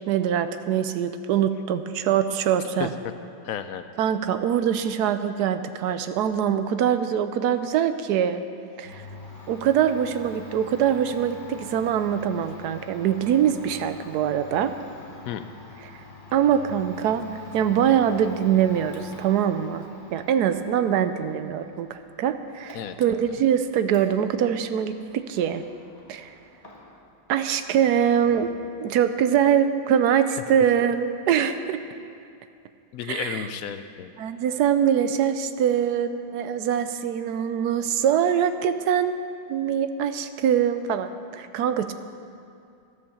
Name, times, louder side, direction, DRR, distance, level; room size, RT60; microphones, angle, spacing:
voice 1, 0.1-2.9 4.0-8.4 8.8-9.0 9.5-14.7 16.3-17.3 17.5-19.9 20.1-25.6 26.1-26.3 27.3-28.5 28.8-31.8 33.1-33.5 34.2-39.2 39.5-41.9, right 9 dB, 70° right, 10 dB, 1.0 m, -23 dB
voice 2, 3.4-3.9 15.2-15.4 22.7-22.9 32.9-34.1, left 9 dB, 75° left, 9 dB, 0.8 m, -32 dB
Domestic sounds home sounds, 8.8-27.2 27.4-28.5, left 2 dB, 20° left, 1.8 m, -45 dB
13.0 x 8.1 x 7.0 m, 2.5 s
omnidirectional pair, 2.0 m